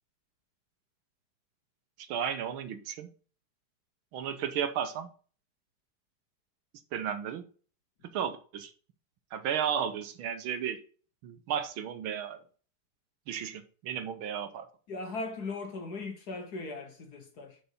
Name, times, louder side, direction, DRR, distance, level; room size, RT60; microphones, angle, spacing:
voice 1, 2.0-3.1 4.1-5.1 6.9-7.4 8.1-8.7 9.3-10.8 11.2-12.4 13.3-14.7, right 8 dB, 75° right, 1.6 m, -33 dB
voice 2, 14.9-17.6, left 3 dB, 55° left, 1.5 m, -38 dB
6.6 x 5.2 x 5.6 m
omnidirectional pair, 2.3 m